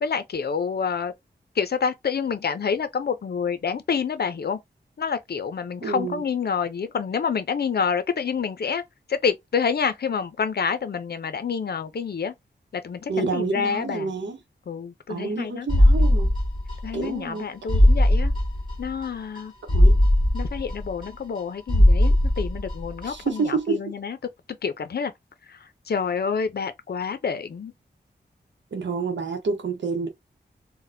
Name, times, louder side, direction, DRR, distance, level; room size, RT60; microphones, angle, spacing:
voice 1, 0.0-1.1 1.6-4.6 5.0-8.8 9.1-12.3 12.8-14.1 14.7-15.7 16.8-18.3 18.8-19.5 20.3-24.2 24.6-25.1 25.5-25.6 25.9-27.7, left 6 dB, 60° left, 0.5 m, -28 dB
voice 2, 5.8-6.2 13.1-14.4 15.1-16.3 16.9-17.4 19.7-20.0 23.0-23.8 28.7-30.1, right 4 dB, 90° right, 0.8 m, -28 dB
sound 1, 15.7-17.1 17.4-17.5 17.7-19.1 19.4-19.5 19.7-21.4 21.7-23.1 23.4-23.5, left 1 dB, 25° left, 1.5 m, -19 dB
4.0 x 2.1 x 2.6 m
wide cardioid pair, 100°, 18 cm